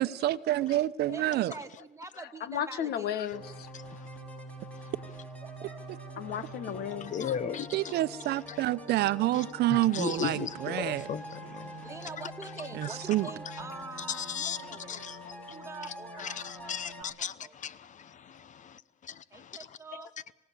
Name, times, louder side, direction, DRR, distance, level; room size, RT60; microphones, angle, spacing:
voice 1, 0.0-1.5 7.7-11.1 12.7-13.3, right 15 dB, 75° right, 0.8 m, -28 dB
voice 2, 1.1-3.1 3.8-4.0 5.4-5.9 11.8-15.0 15.3-17.1 17.4-17.5 19.3-20.1, right 4 dB, 15° right, 2.1 m, -45 dB
voice 3, 2.4-3.7 6.2-7.1 13.2-13.3 14.4-14.5 15.2-15.3 19.9-20.0, left 9 dB, 70° left, 1.4 m, -35 dB
sound 1, 3.3-17.0, equal, 5° left, 5.4 m, -45 dB
voice 4, 7.0-7.7 9.7-11.9 14.1-15.6 16.2-17.3 17.6-19.6, left 8 dB, 45° left, 0.9 m, -37 dB
27.0 x 17.0 x 8.4 m
cardioid pair, 110°, 17 cm